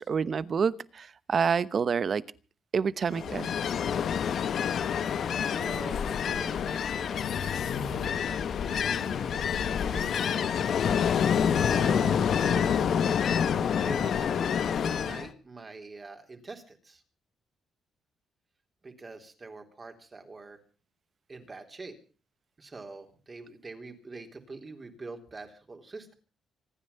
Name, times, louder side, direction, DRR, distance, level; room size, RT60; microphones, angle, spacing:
voice 1, 0.0-2.2 2.7-3.5, right 6 dB, 45° right, 0.9 m, -28 dB
Ocean, 3.1-15.3, left 7 dB, 60° left, 1.2 m, -27 dB
sound 1, 4.8-6.3 7.1-8.3 8.6-10.3, left 6 dB, 80° left, 4.7 m, -41 dB
voice 2, 5.5-7.2 7.6-13.2 13.7-17.0 18.8-20.6 21.3-22.0 22.6-26.1, right 3 dB, 30° right, 3.6 m, -45 dB
26.0 x 9.8 x 5.7 m
cardioid pair, 90°, 0 cm